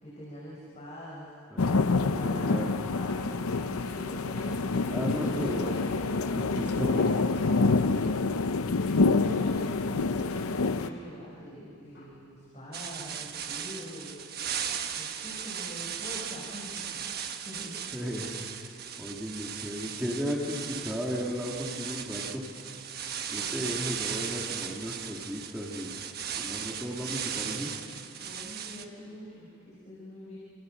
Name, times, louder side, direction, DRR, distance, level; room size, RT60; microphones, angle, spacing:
voice 1, 0.0-1.3 2.0-4.6 5.0-7.1 7.9-8.1 9.0-14.2 14.9-17.8 23.3-23.7 28.2-30.4, equal, 30° left, -6 dB, 5.5 m, -43 dB
voice 2, 1.5-2.9 4.9-5.7 6.3-7.1 7.5-8.1 17.9-18.7 19.0-22.4 23.3-26.0 26.3-27.7, equal, 5° right, -4 dB, 2.7 m, -35 dB
sound 1, 1.6-10.9, left 3 dB, 85° left, 0.7 m, -27 dB
sound 2, 3.0-8.3 8.8-11.3 12.0-12.2, left 2 dB, 55° left, 7.8 m, -52 dB
sound 3, 12.7-28.8, right 8 dB, 45° right, 1.3 m, -37 dB
28.5 x 26.5 x 6.6 m, 2.8 s
head